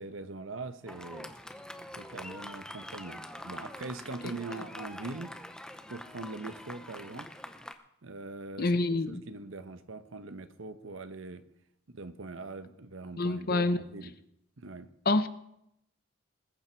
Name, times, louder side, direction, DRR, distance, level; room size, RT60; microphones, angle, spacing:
voice 1, 0.0-1.3 2.0-5.3 5.9-7.3 8.0-8.7 9.1-11.4 11.9-14.1 14.6-14.9, right 3 dB, 75° right, 10 dB, 1.0 m, -42 dB
Fireworks, 0.9-7.7, left 1 dB, 5° left, 0.7 m, -44 dB
voice 2, 8.6-9.2 13.2-13.8 15.1-15.3, left 2 dB, 50° left, 12 dB, 0.7 m, -27 dB
20.5 x 8.8 x 4.6 m, 0.79 s
head